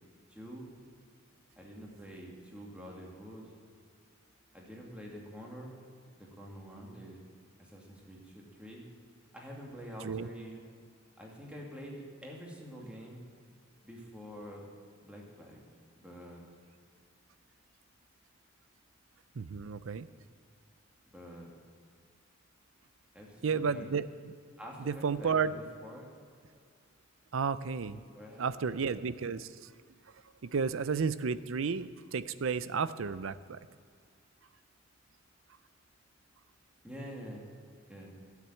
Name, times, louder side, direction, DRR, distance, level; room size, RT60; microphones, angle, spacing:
voice 1, 0.3-0.7 1.6-3.5 4.5-5.7 6.2-7.2 7.6-8.8 9.3-10.6 11.2-13.2 13.8-14.7 15.0-15.6 16.0-16.4 21.1-21.5 23.1-24.0 24.6-26.1 27.8-28.9 36.8-37.4 37.9-38.1, equal, 5° right, -2 dB, 2.3 m, -47 dB
voice 2, 19.4-20.1 23.4-24.3 24.8-25.5 27.3-28.0 28.4-29.5 30.4-33.6, right 5 dB, 90° right, 15 dB, 0.5 m, -32 dB
12.5 x 7.4 x 8.8 m, 2.2 s
head